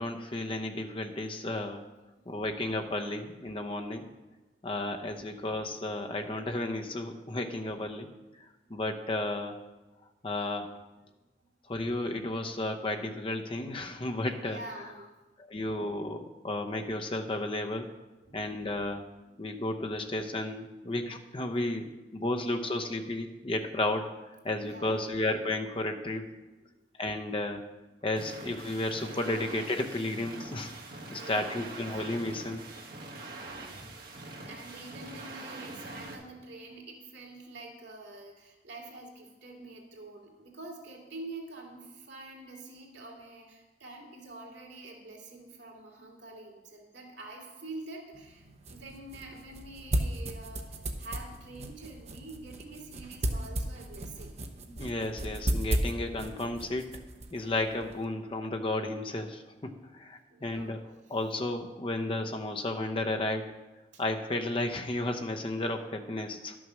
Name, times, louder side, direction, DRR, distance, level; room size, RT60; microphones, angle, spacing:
voice 1, 0.0-1.9 2.3-4.1 4.6-8.1 8.7-9.6 10.2-10.8 11.7-14.6 15.4-17.9 18.3-19.0 19.4-24.1 24.4-26.3 27.0-27.6 28.0-30.8 31.1-32.6 54.7-56.9 57.3-60.8 61.1-63.6 64.0-66.6, left 2 dB, 30° left, 4 dB, 0.8 m, -33 dB
voice 2, 14.4-15.1 18.2-18.5 19.2-19.3 24.6-25.2 31.1-32.0 33.4-34.2 34.5-54.4 60.3-60.8 63.9-64.0, right 2 dB, 80° right, 0 dB, 2.4 m, -46 dB
sound 1, 28.2-36.2, right 2 dB, 55° right, 1.6 m, -44 dB
sound 2, 48.1-58.0, right 1 dB, 40° right, 0.8 m, -35 dB
11.5 x 6.2 x 6.2 m, 1.1 s
head